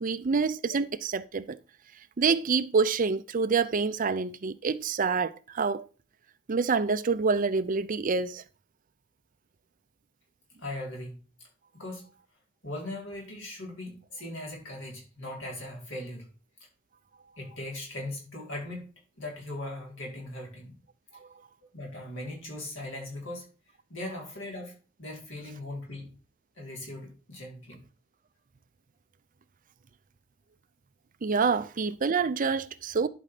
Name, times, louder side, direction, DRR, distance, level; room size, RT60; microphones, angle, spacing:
voice 1, 0.0-1.6 2.2-5.9 6.5-8.4 31.2-33.1, right 5 dB, 35° right, 0.5 m, -27 dB
voice 2, 10.6-11.3 11.7-12.1 12.6-16.3 17.3-18.8 19.2-20.8 21.7-23.5 23.9-26.1 26.6-27.8, left 1 dB, 55° left, 4.7 m, -39 dB
11.5 x 5.2 x 5.0 m
head